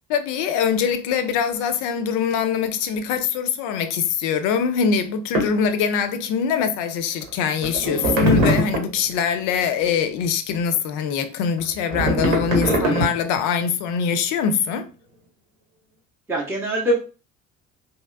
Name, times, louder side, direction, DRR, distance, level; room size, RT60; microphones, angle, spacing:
voice 1, 0.1-14.9, left 7 dB, 50° left, 0.5 m, -23 dB
sound 1, 5.3-5.6 7.2-7.3 7.6-9.0 11.6-13.4, equal, 75° right, 0.9 m, -22 dB
voice 2, 12.6-13.1 16.3-17.0, right 1 dB, 5° right, 0.6 m, -24 dB
3.0 x 2.8 x 2.3 m
figure-of-eight pair, 60°, 40 cm